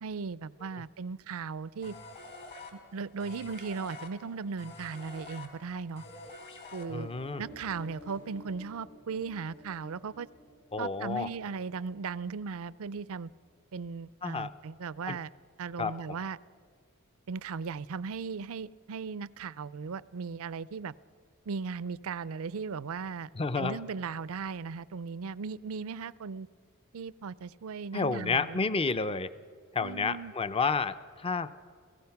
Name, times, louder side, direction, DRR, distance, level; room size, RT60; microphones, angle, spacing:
voice 1, 0.0-2.0 2.7-6.0 6.7-7.1 7.4-10.3 10.8-13.3 13.7-15.3 15.6-16.4 17.3-20.9 21.5-23.3 23.6-26.5 26.9-28.6 29.8-30.3, right 5 dB, 70° right, 19 dB, 0.5 m, -37 dB
sound 1, 1.8-7.3, left 2 dB, 50° left, 3.0 m, -47 dB
sound 2, 6.9-12.4, equal, 70° left, 6.8 m, -52 dB
voice 2, 6.9-7.4 10.7-11.3 14.2-14.5 15.1-15.2 15.8-16.2 23.4-23.8 27.9-29.3 29.7-31.5, left 4 dB, 25° left, 13 dB, 0.5 m, -30 dB
30.0 x 17.0 x 5.8 m, 2.1 s
head